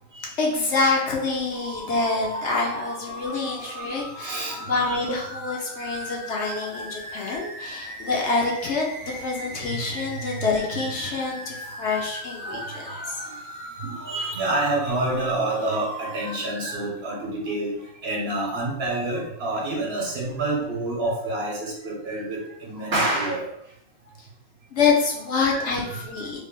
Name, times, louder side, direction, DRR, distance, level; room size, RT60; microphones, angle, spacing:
voice 1, 0.4-13.2 24.7-26.4, left 4 dB, 60° left, -2 dB, 0.9 m, -26 dB
sound 1, 1.5-16.3, right 1 dB, 30° right, 0.3 m, -38 dB
voice 2, 2.3-2.9 3.6-4.6 5.0-5.1 6.6-6.7 9.1-9.2 9.7-9.8 10.7-10.9 12.4-13.1 13.8-17.7 18.0-23.5 25.4-26.2, right 2 dB, 55° right, -2 dB, 1.0 m, -28 dB
3.4 x 2.1 x 3.7 m, 0.74 s
omnidirectional pair, 1.4 m